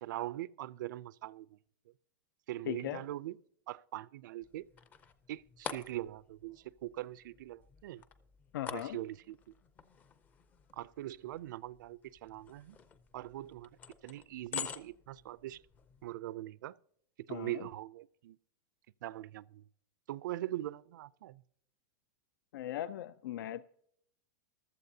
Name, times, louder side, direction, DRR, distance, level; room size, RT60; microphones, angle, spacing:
voice 1, 0.0-1.6 2.5-3.4 3.7-4.7 5.3-8.0 8.7-9.4 10.7-12.8 13.1-13.7 14.0-15.6 16.0-16.8 17.2-18.4 19.0-19.7 20.1-21.4, right 15 dB, 65° right, 0.4 m, -42 dB
voice 2, 2.7-3.0 8.5-9.0 17.3-17.6 22.5-23.7, left 12 dB, 90° left, 0.4 m, -39 dB
sound 1, 4.4-16.1, left 7 dB, 15° left, 0.4 m, -49 dB
15.0 x 12.0 x 2.7 m
supercardioid pair, 180°, 11 cm